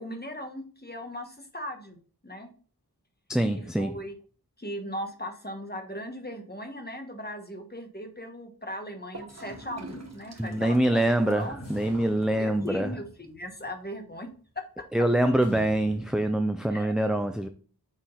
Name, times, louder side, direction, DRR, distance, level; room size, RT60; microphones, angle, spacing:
voice 1, 0.0-2.0 2.2-2.5 3.5-4.1 4.6-11.7 12.4-14.3 14.5-14.6 16.7-16.9, equal, 25° left, 1.3 m, -38 dB
voice 2, 3.3-4.0 10.4-13.0 14.9-17.5, right 1 dB, ahead, 0.4 m, -25 dB
Gurgling / Toilet flush, 9.1-13.1, right 2 dB, 40° right, 1.2 m, -47 dB
sound 1, 9.2-10.7 11.4-14.8 15.4-16.4, equal, 80° left, 2.3 m, -48 dB
6.3 x 3.7 x 4.0 m
wide cardioid pair, 40°, 39 cm